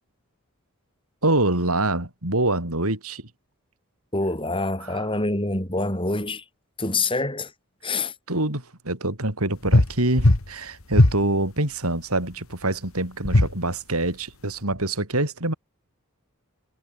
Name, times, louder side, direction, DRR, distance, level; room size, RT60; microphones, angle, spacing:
voice 1, 1.2-3.3 4.8-5.1 8.3-15.5, right 2 dB, 85° right, 5.6 m, -25 dB
voice 2, 4.1-6.4 6.8-7.5 7.8-8.1, left 2 dB, 25° left, 5.6 m, -26 dB
sound 1, 9.7-9.9 10.2-10.5 10.9-11.2 13.2-13.5, left 1 dB, 70° left, 1.7 m, -16 dB
head